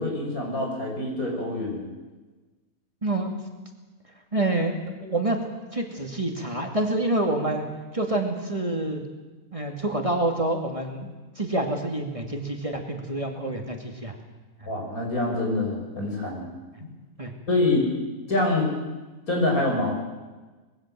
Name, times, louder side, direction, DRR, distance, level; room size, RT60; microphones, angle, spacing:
voice 1, 0.0-1.9 14.7-16.5 17.5-17.9 18.3-18.7 19.3-19.9, left 2 dB, 75° left, 0 dB, 6.7 m, -25 dB
voice 2, 3.0-3.3 4.3-4.8 5.0-5.4 5.7-7.6 7.9-9.0 9.5-14.2 17.2-17.3, right 2 dB, 20° right, 2 dB, 2.6 m, -27 dB
25.0 x 21.0 x 7.7 m, 1.2 s
omnidirectional pair, 1.5 m